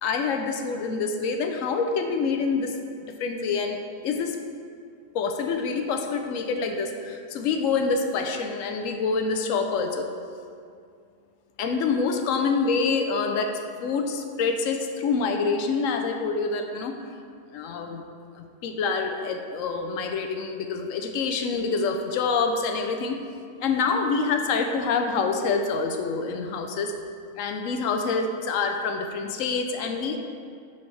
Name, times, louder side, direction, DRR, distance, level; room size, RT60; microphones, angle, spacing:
voice 1, 0.0-2.7 3.1-3.8 4.0-4.4 5.1-10.1 11.6-13.5 13.8-17.0 17.5-18.0 18.4-23.2 23.6-26.9 27.4-30.2, left 4 dB, 65° left, 5 dB, 0.9 m, -26 dB
10.0 x 4.1 x 3.3 m, 2.3 s
omnidirectional pair, 1.6 m